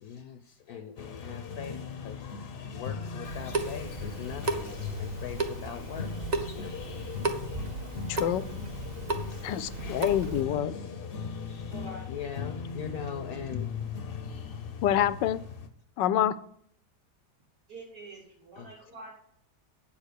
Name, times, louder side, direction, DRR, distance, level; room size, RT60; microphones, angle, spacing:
voice 1, 0.0-7.0 9.3-9.5 9.8-10.0 11.5-11.7 12.1-13.7 18.6-18.7, left 8 dB, 70° left, 9 dB, 1.0 m, -42 dB
sound 1, 1.0-15.7, left 5 dB, 45° left, 0.8 m, -38 dB
Water tap faucet / Sink (filling or washing) / Drip, 3.2-10.4, right 3 dB, 35° right, 0.7 m, -35 dB
voice 2, 8.1-8.5 9.4-10.7 14.8-15.4 16.0-16.4, left 11 dB, 85° left, 15 dB, 1.2 m, -26 dB
voice 3, 11.7-12.5 17.7-19.2, right 2 dB, 65° right, -3 dB, 4.0 m, -46 dB
8.6 x 7.4 x 6.6 m, 0.67 s
omnidirectional pair, 1.9 m